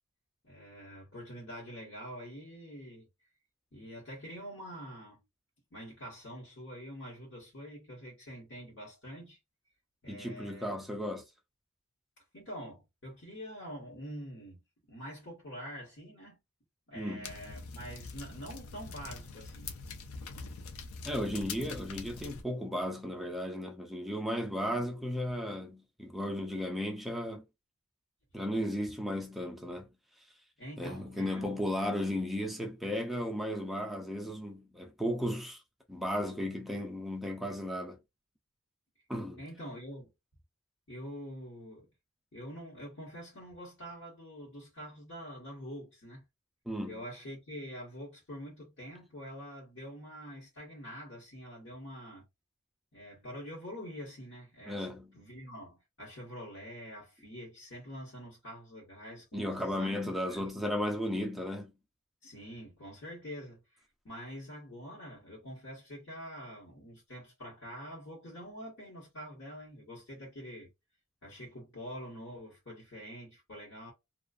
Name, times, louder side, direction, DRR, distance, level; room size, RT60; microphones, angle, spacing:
voice 1, 0.4-3.1 3.7-5.2 5.7-9.4 10.0-10.8 12.3-16.4 16.9-19.7 28.8-28.9 30.6-31.5 39.4-40.1 40.9-41.9 42.3-46.3 46.9-52.3 52.9-60.0 60.3-60.5 62.2-70.7 71.2-73.9, equal, 55° left, 1.1 m, -46 dB
voice 2, 10.1-11.3 16.9-17.3 21.0-27.4 28.3-29.9 30.8-35.6 35.9-38.0 39.1-39.4 46.7-47.0 54.7-55.1 59.3-61.7, equal, ahead, 0.4 m, -35 dB
sound 1, 17.2-22.4, left 4 dB, 75° left, 0.5 m, -44 dB
2.4 x 2.3 x 2.4 m
head